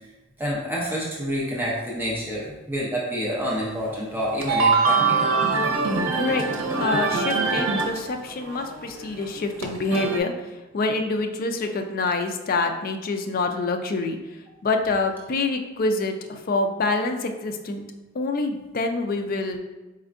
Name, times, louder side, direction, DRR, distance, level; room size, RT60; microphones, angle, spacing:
voice 1, 0.4-5.3, equal, 10° right, -6 dB, 0.7 m, -28 dB
sound 1, 3.5-3.6 4.2-10.2, right 4 dB, 85° right, 0.7 m, -23 dB
voice 2, 6.1-6.5 6.7-17.8 18.1-19.6, left 3 dB, 45° left, 5 dB, 0.4 m, -26 dB
4.3 x 3.4 x 2.5 m, 1.1 s
head